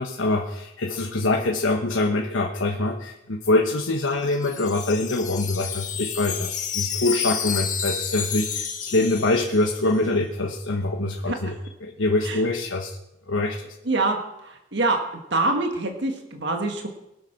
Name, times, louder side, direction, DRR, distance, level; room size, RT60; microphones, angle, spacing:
voice 1, 0.0-11.5 11.8-13.0 13.3-13.7, left 2 dB, 75° left, 1 dB, 1.2 m, -24 dB
Wind chime, 4.0-10.0, left 8 dB, 40° left, 1.3 m, -31 dB
voice 2, 11.3-11.6 12.2-12.4 13.8-15.0 15.3-16.9, right 2 dB, 55° right, 3 dB, 1.7 m, -25 dB
21.5 x 8.0 x 5.9 m, 0.89 s
head